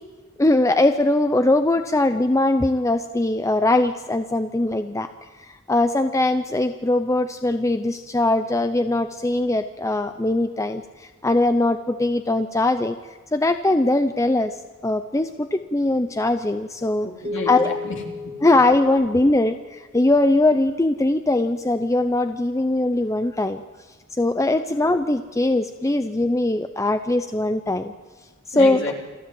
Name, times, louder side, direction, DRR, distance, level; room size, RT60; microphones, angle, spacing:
voice 1, 0.4-5.1 5.5-13.0 13.3-14.6 14.8-17.1 17.5-17.8 18.4-23.6 24.1-27.9 28.5-28.8, left 2 dB, 15° left, 9 dB, 0.6 m, -21 dB
voice 2, 17.0-18.5 28.5-29.0, left 2 dB, 55° left, 1 dB, 3.3 m, -31 dB
sound 1, 17.2-19.8, left 4 dB, 30° right, 1.5 m, -34 dB
27.5 x 13.0 x 7.7 m, 1.4 s
head